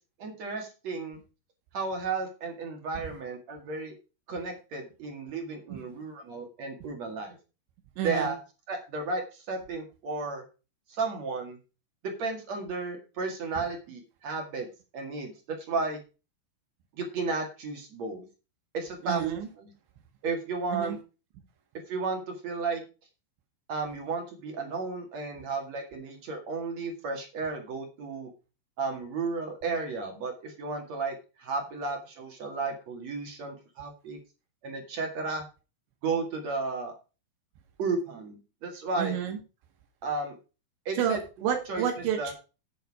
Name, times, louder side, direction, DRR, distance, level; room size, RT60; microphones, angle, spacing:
voice 1, 0.2-1.2 1.7-3.9 4.3-7.4 8.0-8.4 8.7-10.4 10.9-11.6 12.0-14.7 14.9-16.0 17.0-18.3 18.7-19.2 19.6-19.7 20.2-21.0 21.9-22.8 23.7-28.3 28.8-34.2 34.6-35.4 36.0-36.9 37.8-39.2 40.0-40.4 40.9-41.2 41.7-41.9 42.2-42.3, right 4 dB, 50° right, 3 dB, 2.4 m, -33 dB
voice 2, 8.0-8.3 19.0-19.5 20.7-21.0 39.0-39.4 41.0-42.3, right 9 dB, 75° right, 5 dB, 3.4 m, -30 dB
9.3 x 8.2 x 4.8 m, 0.31 s
omnidirectional pair, 5.4 m